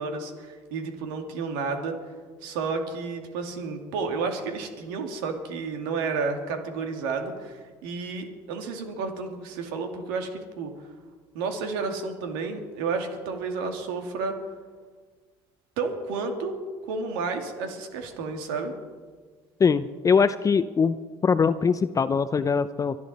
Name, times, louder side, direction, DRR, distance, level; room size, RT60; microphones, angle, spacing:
voice 1, 0.0-2.0 2.4-10.7 11.3-14.4 15.8-16.6 16.9-18.7, right 4 dB, 85° right, 4 dB, 2.3 m, -31 dB
voice 2, 19.6-21.0 21.2-23.0, left 5 dB, 30° left, 12 dB, 0.6 m, -22 dB
24.5 x 11.0 x 4.2 m, 1.5 s
supercardioid pair, 80°, 11 cm